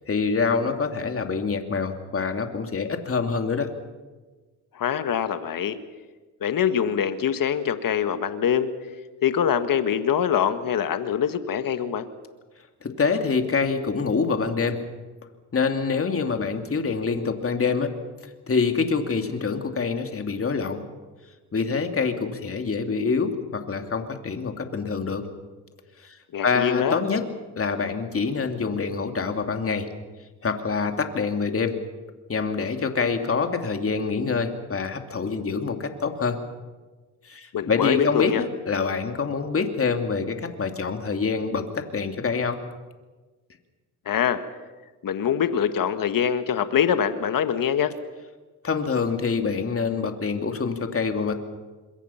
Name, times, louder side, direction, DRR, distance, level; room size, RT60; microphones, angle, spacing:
voice 1, 0.1-3.7 12.8-14.8 15.5-17.9 18.5-20.8 21.5-25.2 26.0-26.2 26.4-27.2 27.6-29.9 30.4-31.8 32.3-36.4 37.2-42.6 48.6-51.3, left 5 dB, 30° left, 5 dB, 2.9 m, -26 dB
voice 2, 4.7-5.8 6.4-8.7 9.2-12.1 26.3-27.0 37.5-38.4 44.1-44.4 45.0-47.9, left 8 dB, 50° left, 10 dB, 1.9 m, -24 dB
26.0 x 22.5 x 5.9 m, 1.3 s
supercardioid pair, 70°, 41 cm